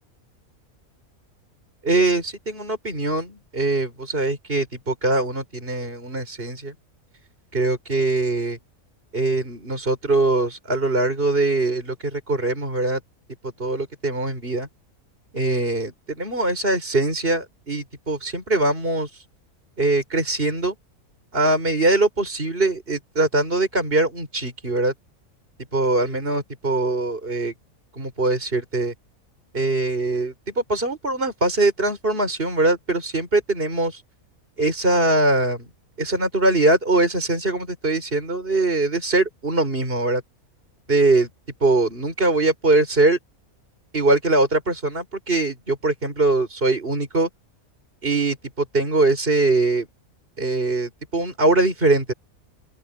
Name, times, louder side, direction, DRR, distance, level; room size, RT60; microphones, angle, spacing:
voice 1, 1.8-6.7 7.5-8.6 9.1-13.0 13.4-14.7 15.3-19.2 19.8-20.7 21.3-24.9 25.7-27.5 27.9-28.9 29.5-34.0 34.6-35.7 36.0-40.2 40.9-41.3 41.6-43.2 43.9-47.3 48.0-49.9 50.4-52.1, right 2 dB, 40° right, 6.1 m, -22 dB
open air
omnidirectional pair, 1.5 m